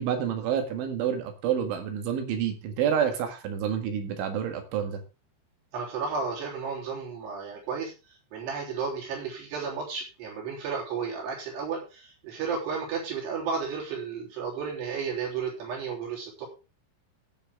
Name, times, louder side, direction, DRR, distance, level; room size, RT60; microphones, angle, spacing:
voice 1, 0.0-5.0, right 8 dB, 80° right, 6 dB, 4.1 m, -28 dB
voice 2, 5.7-7.9 8.3-16.5, right 5 dB, 60° right, -2 dB, 5.4 m, -33 dB
17.0 x 6.5 x 3.6 m, 0.31 s
omnidirectional pair, 5.5 m